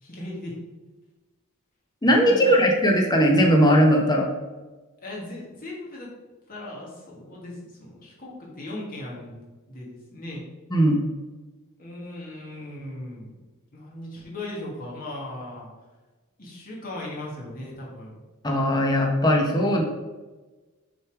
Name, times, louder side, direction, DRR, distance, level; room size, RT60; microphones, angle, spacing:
voice 1, 0.0-0.6 2.2-2.6 5.0-6.1 6.5-9.4 9.7-10.4 11.8-13.3 13.7-15.7 16.4-18.2, left 1 dB, 40° left, -4 dB, 1.7 m, -38 dB
voice 2, 2.0-4.3 10.7-11.0 18.4-19.8, equal, 20° left, 1 dB, 0.9 m, -19 dB
6.1 x 3.6 x 4.8 m, 1.2 s
head